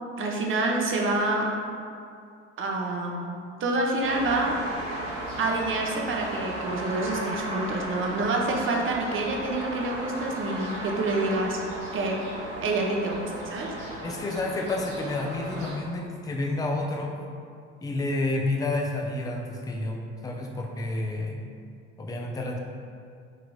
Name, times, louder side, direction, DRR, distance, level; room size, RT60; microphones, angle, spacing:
voice 1, 0.2-1.6 2.6-4.6 5.4-11.6 11.9-12.2 12.6-13.7, right 2 dB, 35° right, 0 dB, 0.7 m, -27 dB
sound 1, 4.0-15.8, right 1 dB, 75° right, 0.9 m, -35 dB
voice 2, 14.0-17.1 17.8-21.4 22.0-22.6, left 2 dB, 10° left, 1 dB, 0.4 m, -30 dB
4.8 x 2.8 x 2.3 m, 2.4 s
hypercardioid pair, 60°, 36 cm